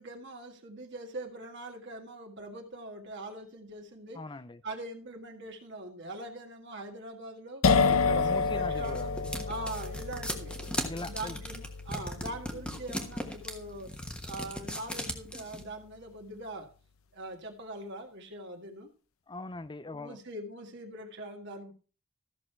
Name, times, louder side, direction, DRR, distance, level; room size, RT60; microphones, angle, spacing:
voice 1, 0.0-4.2 4.6-7.6 8.0-9.1 9.5-10.6 10.9-13.9 14.2-16.7 17.1-18.9 19.9-21.7, right 1 dB, 55° right, 2 dB, 1.7 m, -42 dB
voice 2, 4.1-4.6 7.9-9.3 10.9-11.4 19.3-20.2, left 2 dB, 20° left, 15 dB, 0.5 m, -40 dB
sound 1, 7.6-15.2, left 4 dB, 90° left, 0.8 m, -30 dB
sound 2, 8.4-15.6, equal, 5° left, 1.2 m, -37 dB
14.0 x 6.5 x 4.5 m, 0.36 s
head